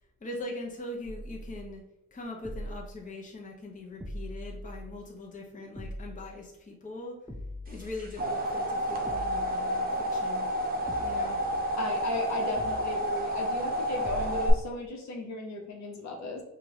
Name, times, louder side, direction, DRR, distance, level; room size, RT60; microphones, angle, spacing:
voice 1, 0.2-1.8 2.1-7.2 7.7-10.5 11.0-11.4, left 2 dB, 25° left, -1 dB, 0.8 m, -41 dB
sound 1, 1.0-1.8 2.4-3.1 4.0-5.0 5.8-6.4 7.3-8.4 9.1-9.7 10.9-12.0 12.6-13.2 14.0-14.7, equal, ahead, 0.5 m, -42 dB
sound 2, 7.8-14.5, equal, 30° right, 0.8 m, -30 dB
voice 2, 11.8-16.4, left 2 dB, 65° left, 0 dB, 1.1 m, -35 dB
4.7 x 2.5 x 2.9 m, 0.90 s
cardioid pair, 90°, 30 cm